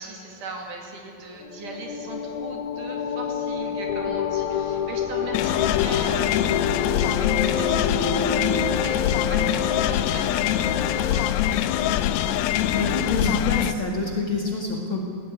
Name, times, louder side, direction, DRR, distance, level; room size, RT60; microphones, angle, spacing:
voice 1, 0.0-12.1, right 3 dB, 60° right, 2 dB, 3.9 m, -39 dB
sound 1, 1.4-11.7, left 6 dB, 60° left, 2.6 m, -28 dB
sound 2, 5.3-13.7, left 11 dB, 90° left, 2.6 m, -24 dB
voice 2, 12.7-15.0, left 3 dB, 40° left, 0 dB, 2.4 m, -26 dB
18.0 x 16.5 x 9.5 m, 2.7 s
omnidirectional pair, 4.3 m